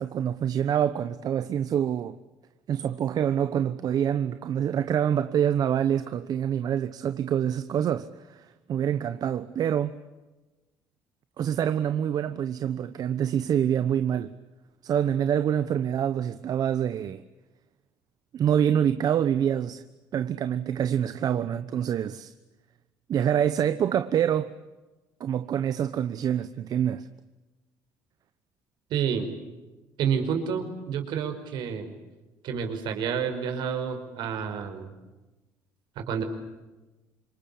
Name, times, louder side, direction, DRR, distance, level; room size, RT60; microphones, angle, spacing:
voice 1, 0.0-2.2 2.7-10.0 11.4-14.3 14.8-17.2 18.3-19.8 20.1-22.3 23.1-24.5 25.2-27.1, right 9 dB, 55° right, 1.1 m, -26 dB
voice 2, 28.9-29.3 30.0-31.9 32.4-34.9 36.0-36.2, right 7 dB, 75° right, 5.2 m, -29 dB
27.5 x 24.0 x 8.5 m
cardioid pair, 95°, 8 cm